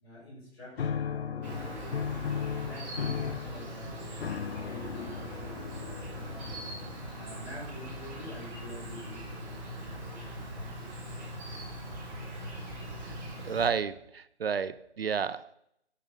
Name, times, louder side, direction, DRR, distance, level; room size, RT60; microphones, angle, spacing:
voice 1, 0.0-2.2 2.6-11.0 12.1-12.2 12.9-13.0, equal, 20° left, -6 dB, 4.0 m, -47 dB
sound 1, 0.8-7.2, left 7 dB, 65° left, 0.5 m, -36 dB
Insect, 1.4-13.7, right 1 dB, 5° right, 0.8 m, -41 dB
voice 2, 13.4-15.5, right 6 dB, 60° right, 16 dB, 0.5 m, -31 dB
11.5 x 5.6 x 5.1 m, 0.76 s
figure-of-eight pair, 155°, 33 cm